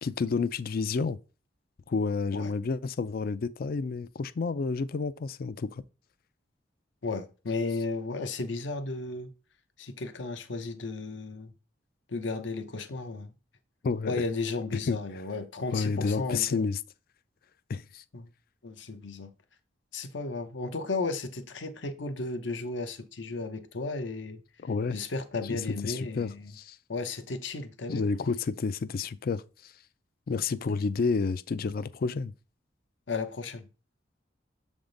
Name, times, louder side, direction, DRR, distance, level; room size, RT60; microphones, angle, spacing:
voice 1, 0.0-1.2 1.9-5.8 13.8-14.2 14.9-15.2 15.7-16.8 17.7-18.0 24.6-25.0 25.5-26.8 27.9-29.7 30.3-32.3, left 4 dB, 55° left, 0.4 m, -30 dB
voice 2, 7.0-9.3 9.8-11.5 12.1-13.3 14.1-16.6 18.1-18.3 18.6-19.3 19.9-24.4 24.9-26.5 26.9-28.1 33.1-33.6, left 3 dB, 75° left, 0.8 m, -34 dB
7.0 x 3.6 x 3.8 m
head